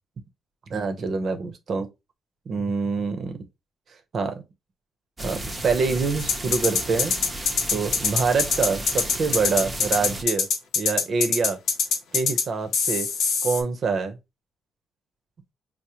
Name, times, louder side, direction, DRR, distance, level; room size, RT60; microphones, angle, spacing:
voice 1, 0.7-1.9 2.5-3.4 4.1-4.4 5.2-7.1 7.7-10.5 10.8-11.6 12.1-13.1 13.4-14.2, right 4 dB, 55° right, 0.7 m, -25 dB
sound 1, 5.2-10.2, right 1 dB, 20° right, 0.7 m, -34 dB
sound 2, 6.2-12.4 12.7-13.6, left 5 dB, 75° left, 0.8 m, -23 dB
4.7 x 2.1 x 2.8 m
cardioid pair, 90°, 0 cm